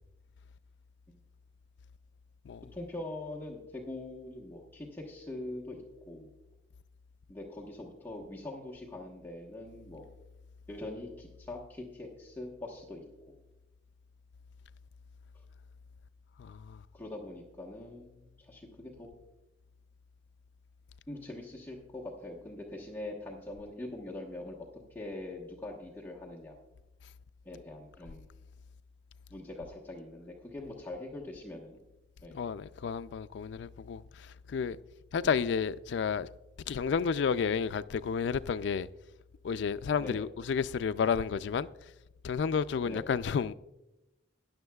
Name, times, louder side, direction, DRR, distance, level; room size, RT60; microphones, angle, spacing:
voice 1, 2.7-6.3 7.3-10.1 10.7-13.4 16.9-19.1 21.1-26.6 27.4-28.2 29.3-31.8 32.2-32.4 35.2-35.3 40.0-40.3 42.9-43.0, left 2 dB, 10° left, 1.1 m, -43 dB
voice 2, 16.4-16.8 32.3-34.8 35.1-36.3 36.7-38.9 39.4-41.7 42.2-43.5, left 6 dB, 65° left, 0.3 m, -31 dB
16.0 x 10.5 x 2.3 m
head